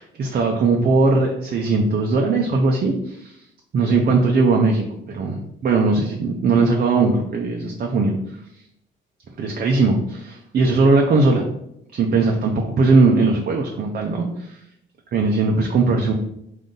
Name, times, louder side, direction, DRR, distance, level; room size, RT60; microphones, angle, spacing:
voice 1, 0.0-3.4 3.7-8.2 9.4-11.4 11.9-14.6 15.1-16.1, right 3 dB, 50° right, 1 dB, 0.6 m, -19 dB
3.7 x 2.6 x 3.8 m, 0.77 s
cardioid pair, 90°, 20 cm